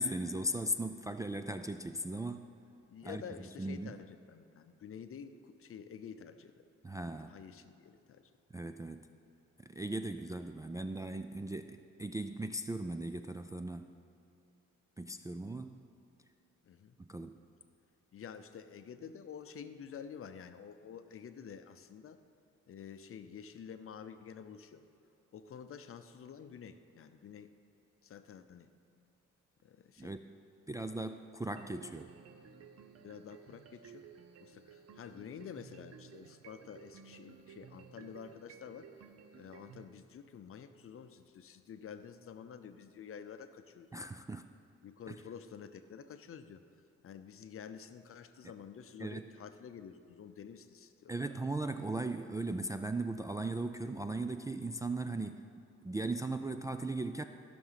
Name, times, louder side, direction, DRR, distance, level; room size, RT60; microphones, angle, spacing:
voice 1, 0.0-2.5 3.0-3.2 3.6-3.9 6.8-7.3 8.5-9.1 9.7-14.0 15.0-15.8 17.0-17.4 30.0-30.2 30.7-32.1 43.9-44.4 45.1-45.2 49.0-49.3 51.1-55.4 55.8-57.2, right 2 dB, 10° right, 7 dB, 0.3 m, -38 dB
voice 2, 2.9-6.6 7.3-8.2 16.6-17.0 18.1-22.2 22.7-24.8 25.3-27.5 28.0-28.7 29.6-30.1 33.0-34.1 34.4-38.9 39.3-43.9 44.8-46.6 47.0-51.1, left 7 dB, 45° left, 10 dB, 0.7 m, -49 dB
sound 1, 31.6-39.9, right 7 dB, 55° right, 0.8 m, -55 dB
15.0 x 6.1 x 5.7 m, 2.9 s
cardioid pair, 90°, 30 cm